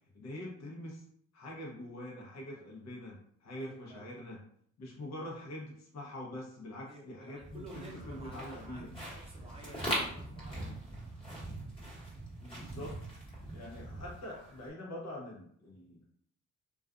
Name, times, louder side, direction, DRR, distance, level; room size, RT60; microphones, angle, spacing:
voice 1, 0.1-1.0 1.3-4.4 4.8-8.9 12.4-12.9 13.5-16.0, left 1 dB, 60° left, -2 dB, 0.9 m, -44 dB
voice 2, 3.6-4.1 6.8-10.8, right 2 dB, 20° right, -1 dB, 0.6 m, -51 dB
sound 1, 7.4-14.7, right 1 dB, 20° left, 1.2 m, -41 dB
2.4 x 2.4 x 2.4 m, 0.65 s
cardioid pair, 90°, 30 cm